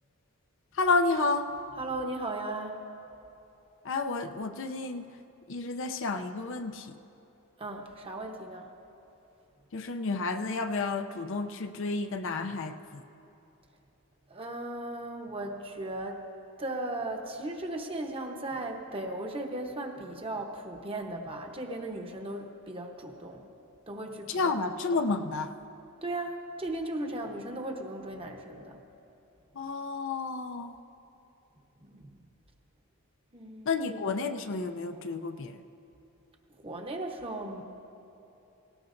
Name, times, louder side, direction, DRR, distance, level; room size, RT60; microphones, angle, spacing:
voice 1, 0.7-1.5 3.8-5.1 5.5-7.0 9.7-13.0 24.3-25.5 29.6-30.8 33.7-35.6, left 3 dB, 60° left, 7 dB, 0.5 m, -31 dB
voice 2, 1.8-2.8 7.6-8.7 14.3-16.3 16.6-23.5 23.9-24.6 26.0-28.8 31.8-32.2 33.3-34.1 36.6-37.6, right 2 dB, 25° right, 3 dB, 0.9 m, -37 dB
18.5 x 17.5 x 2.6 m, 2.8 s
head